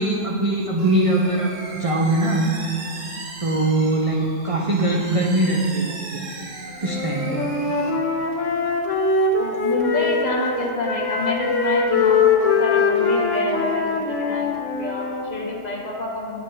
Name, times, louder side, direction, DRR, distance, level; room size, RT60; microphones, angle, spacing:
voice 1, 0.0-2.5 3.4-6.2 6.8-7.5, right 2 dB, 55° right, -1 dB, 0.3 m, -21 dB
sound 1, 0.8-7.9, right 2 dB, 85° right, 1.3 m, -37 dB
Wind instrument woodwind instrument, 6.8-10.6 10.8-15.2, left 4 dB, 80° left, 1.1 m, -22 dB
voice 2, 9.4-14.5 14.8-16.4, left 2 dB, 40° left, 0 dB, 0.8 m, -28 dB
7.9 x 5.9 x 3.8 m, 2.7 s
omnidirectional pair, 1.3 m